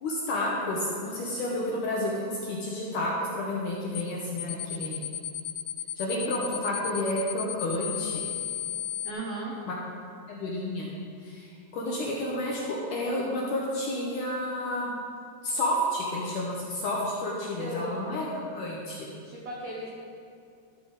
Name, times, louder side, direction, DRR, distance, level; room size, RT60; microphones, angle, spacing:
voice 1, 0.0-5.1 6.0-8.2 9.7-9.8 10.3-10.9 11.2-11.5 11.7-15.0 15.4-19.1, left 1 dB, 70° left, -4 dB, 2.0 m, -30 dB
sound 1, 4.0-4.1 4.4-9.1, left 11 dB, 85° left, 2.0 m, -34 dB
voice 2, 9.0-9.5 17.4-18.1 19.2-19.9, right 2 dB, 85° right, -4 dB, 1.5 m, -36 dB
13.5 x 7.0 x 4.0 m, 2.4 s
omnidirectional pair, 4.9 m